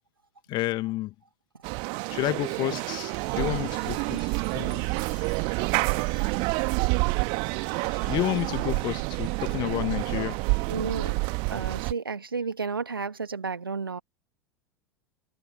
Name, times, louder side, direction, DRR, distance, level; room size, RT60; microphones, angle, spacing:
voice 1, 0.5-1.1 2.1-10.7, left 18 dB, 40° left, 1.5 m, -32 dB
sound 1, 1.6-11.9, right 32 dB, 45° right, 1.4 m, -28 dB
voice 2, 10.7-11.2 11.5-14.0, right 5 dB, 80° right, 1.8 m, -32 dB
figure-of-eight pair, 85°, 12 cm